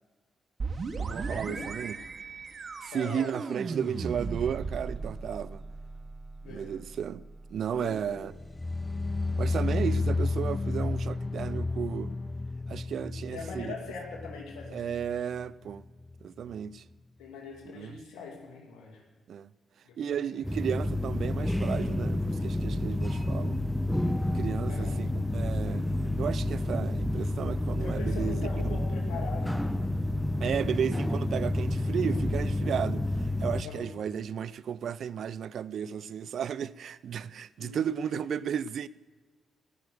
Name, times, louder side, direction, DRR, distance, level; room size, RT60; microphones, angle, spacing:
sound 1, 0.6-10.2, right 4 dB, 55° right, 1.1 m, -38 dB
voice 1, 1.0-1.9 2.8-5.6 6.5-7.2 7.5-8.3 9.4-12.1 12.7-13.7 14.7-15.8 16.2-16.8 17.7-17.9 19.3-19.5 20.0-23.6 24.3-25.9 26.2-28.4 30.4-38.9, right 8 dB, 70° right, 0.4 m, -34 dB
voice 2, 2.9-3.4 6.4-6.7 7.7-8.2 13.3-15.2 17.2-19.0 19.8-20.3 24.7-25.0 27.8-29.9 30.5-30.8 33.6-33.9 37.6-37.8, left 5 dB, 85° left, 2.4 m, -42 dB
sound 2, 8.3-15.4 15.7-16.2 16.5-16.6, left 3 dB, 25° left, 0.4 m, -32 dB
sound 3, 20.4-33.6, left 1 dB, 5° left, 1.0 m, -29 dB
18.0 x 6.5 x 7.9 m
hypercardioid pair, 45°, 0 cm